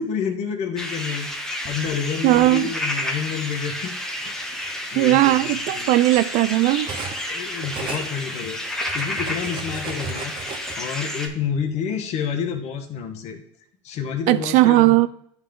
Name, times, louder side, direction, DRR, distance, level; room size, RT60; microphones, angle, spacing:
voice 1, 0.0-3.9 4.2-4.5 4.9-5.9 7.3-8.6 8.9-10.3 10.8-13.4 13.8-14.9, left 7 dB, 50° left, 1.2 m, -29 dB
sound 1, 0.8-11.3, left 1 dB, 5° left, 1.1 m, -30 dB
Cutlery silverware, 1.2-2.5 3.5-3.7 4.1-7.3 7.6-10.8, right 5 dB, 35° right, 1.1 m, -37 dB
voice 2, 2.2-2.7 5.0-6.9 14.3-15.1, right 17 dB, 55° right, 0.4 m, -17 dB
9.5 x 3.5 x 3.7 m
hypercardioid pair, 95°, 15 cm